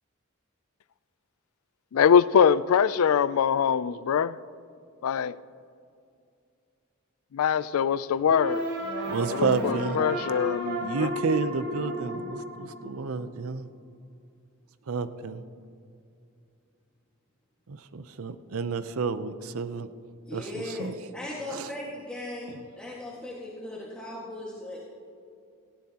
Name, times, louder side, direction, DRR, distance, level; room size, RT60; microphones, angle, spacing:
voice 1, 1.9-4.3 5.0-5.4 7.3-8.7 9.3-11.1, left 7 dB, 85° left, 0.4 m, -23 dB
sound 1, 8.3-13.3, equal, 55° right, 3.2 m, -33 dB
voice 2, 9.0-10.1 10.8-13.7 14.9-15.4 17.7-19.9 20.3-20.9 21.5-21.7, right 4 dB, 85° right, 0.6 m, -30 dB
voice 3, 20.2-22.5 22.7-24.8, left 1 dB, 5° left, 1.7 m, -37 dB
18.0 x 16.0 x 2.9 m
head